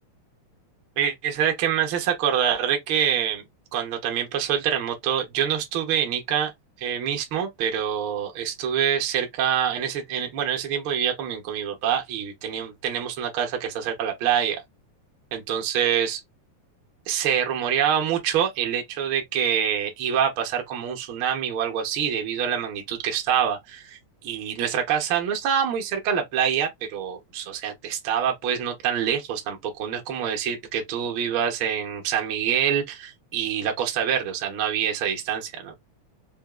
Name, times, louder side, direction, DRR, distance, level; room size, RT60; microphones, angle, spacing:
voice 1, 1.0-3.4 3.7-6.5 6.8-14.6 15.3-16.2 17.1-35.7, right 9 dB, 65° right, 1.4 m, -26 dB
4.6 x 2.5 x 2.4 m
omnidirectional pair, 3.3 m